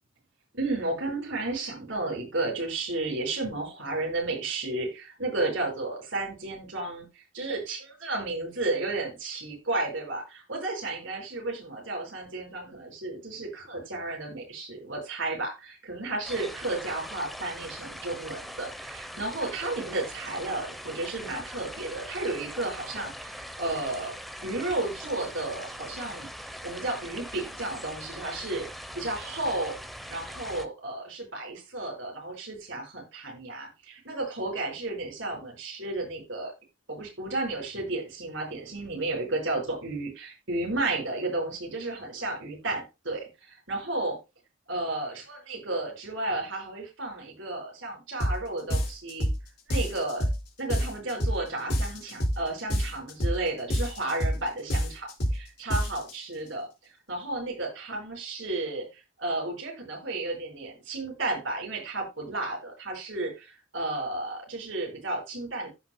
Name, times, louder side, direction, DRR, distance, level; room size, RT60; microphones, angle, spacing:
voice 1, 0.5-24.1 24.4-26.3 26.6-28.7 28.9-29.8 30.1-36.5 36.9-44.2 44.7-49.3 49.7-50.2 50.6-65.7, right 2 dB, 70° right, 0 dB, 4.9 m, -33 dB
sound 1, 16.2-30.7, equal, ahead, 0.8 m, -41 dB
sound 2, 48.2-48.4 48.7-49.4 49.7-50.4 50.7-51.4 51.7-52.4 52.7-53.4 53.7-54.4 54.7-55.4 55.7-56.1, equal, 55° left, 3.7 m, -27 dB
15.0 x 6.1 x 2.2 m, 0.25 s
head